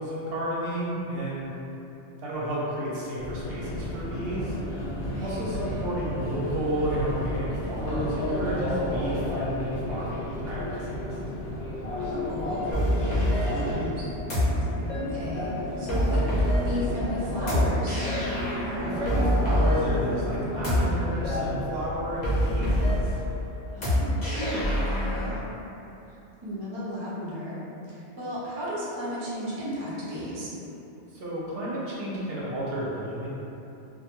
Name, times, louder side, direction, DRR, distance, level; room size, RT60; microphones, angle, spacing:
voice 1, 0.0-1.5 2.2-4.6 5.2-11.1 18.8-23.2 31.1-33.3, right 1 dB, 65° right, -6 dB, 0.7 m, -32 dB
Subway metro underground, 3.2-22.4, left 1 dB, 80° left, 0.9 m, -33 dB
voice 2, 5.0-5.4 5.6-5.9 12.0-14.1 14.9-18.0 23.7-25.3 26.1-26.2 26.4-30.5, equal, 40° right, -8 dB, 0.3 m, -35 dB
sound 1, 11.3-20.9, equal, 10° right, 0.8 m, -37 dB
sound 2, 12.7-25.4, equal, 45° left, 0.7 m, -27 dB
2.2 x 2.2 x 2.9 m, 3.0 s
omnidirectional pair, 1.2 m